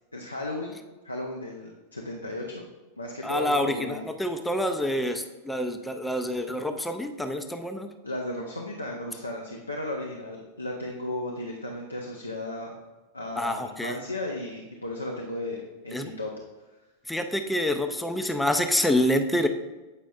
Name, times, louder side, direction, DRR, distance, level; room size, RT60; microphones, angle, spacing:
voice 1, 0.1-0.7 1.0-2.7 3.0-4.1 8.0-12.7 13.1-16.3, left 1 dB, 85° left, 0 dB, 0.6 m, -35 dB
voice 2, 3.2-7.9 13.4-14.0 15.9-16.1 17.1-19.5, left 1 dB, 5° left, 7 dB, 0.5 m, -27 dB
8.2 x 5.0 x 2.4 m, 1.2 s
figure-of-eight pair, 90°, 0 cm